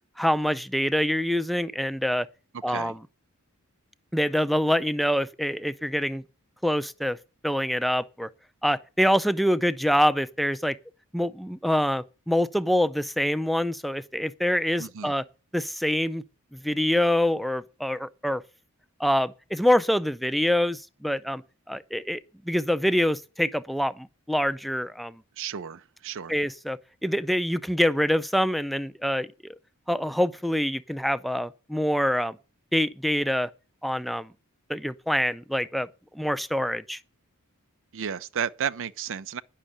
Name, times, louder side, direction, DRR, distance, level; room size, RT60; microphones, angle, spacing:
voice 1, 0.2-2.3 2.6-3.0 4.1-6.2 6.6-7.2 7.4-8.3 8.6-10.8 11.1-15.2 15.5-16.2 16.5-18.4 19.0-21.4 21.7-22.2 22.5-25.2 26.3-29.5 29.9-32.4 32.7-33.5 33.8-34.3 34.7-35.9 36.1-37.0, equal, ahead, 0.5 m, -25 dB
voice 2, 14.8-15.1 25.4-26.4 37.9-39.4, right 8 dB, 60° right, 0.5 m, -33 dB
10.0 x 6.6 x 8.6 m
head